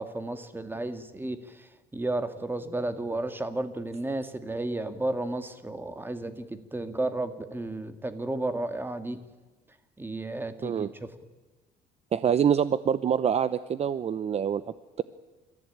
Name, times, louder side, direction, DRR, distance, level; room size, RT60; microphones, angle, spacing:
voice 1, 0.0-1.7 1.9-9.2 10.0-10.9, right 2 dB, 10° right, 10 dB, 2.0 m, -32 dB
voice 2, 12.1-14.6, right 8 dB, 40° right, 15 dB, 0.7 m, -25 dB
28.0 x 14.5 x 8.8 m, 1.2 s
cardioid pair, 110°, 17 cm